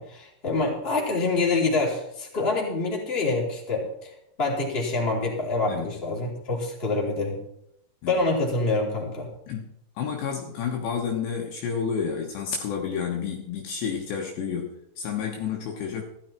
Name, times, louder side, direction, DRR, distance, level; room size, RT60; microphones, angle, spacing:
voice 1, 0.0-4.1 4.4-7.4 8.1-9.3, left 3 dB, 15° left, -3 dB, 2.9 m, -26 dB
voice 2, 9.5-16.0, left 7 dB, 70° left, 0 dB, 3.1 m, -30 dB
15.0 x 12.5 x 4.5 m, 0.76 s
omnidirectional pair, 5.7 m